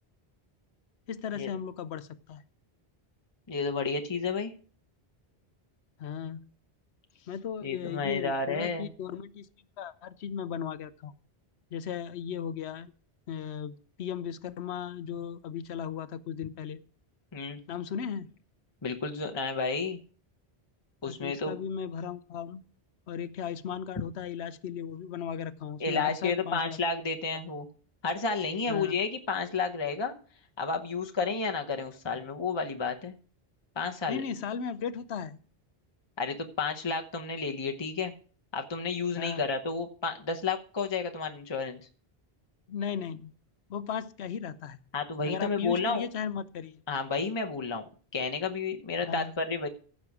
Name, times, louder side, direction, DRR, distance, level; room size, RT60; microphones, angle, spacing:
voice 1, 1.1-2.4 6.0-6.5 7.2-9.5 9.8-11.1 11.7-12.9 13.3-16.8 17.7-18.3 21.0-22.6 23.1-26.8 28.7-28.9 34.1-35.4 39.2-39.4 42.7-43.3 43.7-44.8 45.2-46.8 49.0-49.3, left 7 dB, 85° left, 15 dB, 1.0 m, -36 dB
voice 2, 3.5-4.5 7.6-8.9 17.3-17.6 18.8-20.0 21.0-21.6 25.8-27.7 28.0-30.1 30.6-33.1 33.8-34.2 36.2-38.1 38.5-41.8 44.9-46.0 46.9-47.8 48.1-49.7, left 4 dB, 30° left, 4 dB, 0.8 m, -31 dB
14.5 x 6.4 x 4.8 m, 0.42 s
omnidirectional pair, 1.1 m